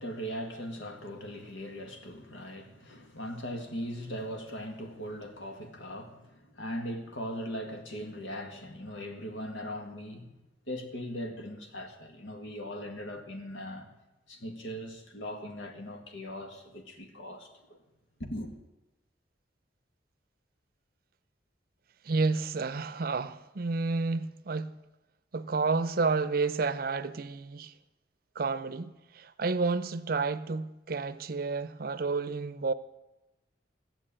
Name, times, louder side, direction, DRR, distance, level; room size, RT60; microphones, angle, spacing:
voice 1, 0.0-10.3 10.7-13.9 14.3-17.8 18.2-18.5, equal, 85° left, 2.0 m, -39 dB
voice 2, 22.0-24.7 25.3-27.7 28.4-32.7, right 4 dB, 50° right, 0.6 m, -30 dB
15.5 x 7.1 x 8.7 m
head